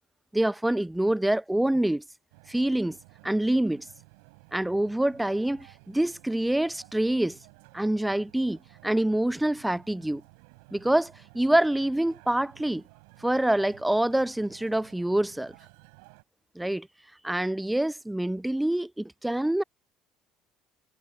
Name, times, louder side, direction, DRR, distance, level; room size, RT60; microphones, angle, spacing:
voice 1, 0.3-2.0 2.5-3.0 3.2-3.9 4.5-7.4 7.7-10.2 10.7-12.8 13.2-15.5 16.6-16.9 17.2-19.6, right 1 dB, 5° right, 0.4 m, -26 dB
sound 1, 2.3-16.2, right 35 dB, 70° right, 6.6 m, -54 dB
figure-of-eight pair, 60°, 0 cm